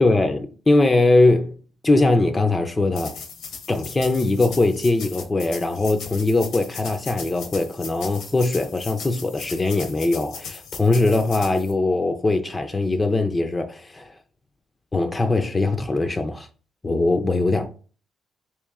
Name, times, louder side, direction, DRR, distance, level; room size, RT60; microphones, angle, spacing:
voice 1, 0.0-1.5 1.8-3.2 3.7-14.2 14.9-16.5 16.8-17.7, left 2 dB, 20° left, 0.4 m, -21 dB
sound 1, 2.9-11.7, left 5 dB, 80° left, 0.8 m, -38 dB
3.1 x 3.0 x 3.5 m
cardioid pair, 90°, 0 cm